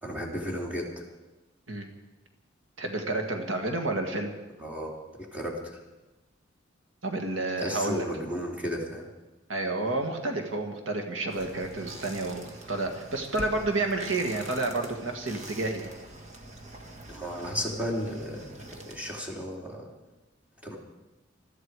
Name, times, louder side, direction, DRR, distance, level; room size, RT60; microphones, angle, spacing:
voice 1, 0.0-1.1 4.6-5.8 7.6-9.1 17.1-19.9 20.6-20.8, equal, 10° right, -3 dB, 3.0 m, -34 dB
voice 2, 2.8-4.3 7.0-8.0 9.5-12.4 12.7-15.9, right 2 dB, 85° right, 4 dB, 2.0 m, -30 dB
sound 1, 11.3-19.2, right 1 dB, 35° right, 1.8 m, -44 dB
21.0 x 13.5 x 4.8 m, 1.1 s
head